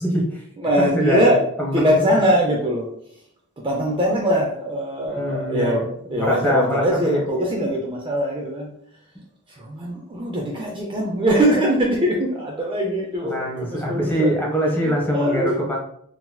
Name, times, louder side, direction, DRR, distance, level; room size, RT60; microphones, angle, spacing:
voice 1, 0.0-0.4 0.8-1.2 1.6-2.0 5.2-5.8 6.1-7.2 13.2-15.8, equal, 10° left, -2 dB, 0.7 m, -23 dB
voice 2, 0.6-1.4 1.7-2.9 3.6-8.7 9.5-14.4 14.8-15.6, equal, 20° right, -1 dB, 0.4 m, -22 dB
3.8 x 2.9 x 2.2 m, 0.69 s
head